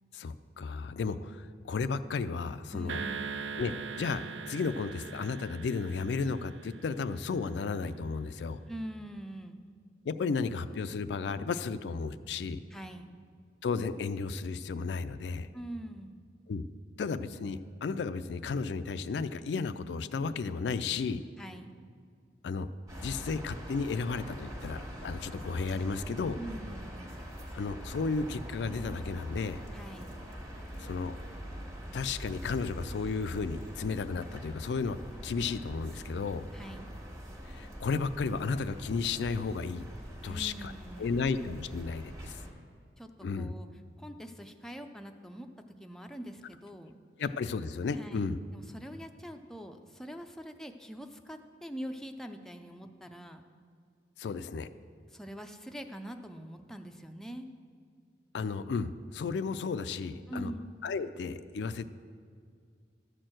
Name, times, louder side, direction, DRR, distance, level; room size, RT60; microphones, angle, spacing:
voice 1, 0.1-3.0 3.6-3.7 4.0-8.6 10.1-12.6 13.6-15.5 16.5-16.7 17.0-21.2 22.4-22.7 23.0-26.4 27.5-29.6 30.8-31.2 31.9-35.0 35.2-36.4 37.5-39.9 40.2-40.7 41.0-42.4 43.2-43.5 47.2-48.4 54.2-54.7 58.3-60.5 60.8-61.9, left 4 dB, 80° left, 11 dB, 0.4 m, -33 dB
voice 2, 2.7-3.3 8.7-9.7 12.7-13.1 15.5-16.2 21.4-21.7 26.4-27.0 29.7-30.2 36.5-36.9 40.2-41.4 43.0-43.1 43.4-43.7 44.0-45.5 45.8-47.0 47.9-53.4 54.2-54.4 55.1-57.5 60.3-60.7, right 1 dB, 5° left, 5 dB, 0.4 m, -44 dB
sound 1, 2.9-7.4, right 5 dB, 90° right, 0.4 m, -41 dB
sound 2, 22.9-42.5, equal, 20° right, 1.4 m, -44 dB
12.5 x 4.5 x 7.6 m, 2.1 s
head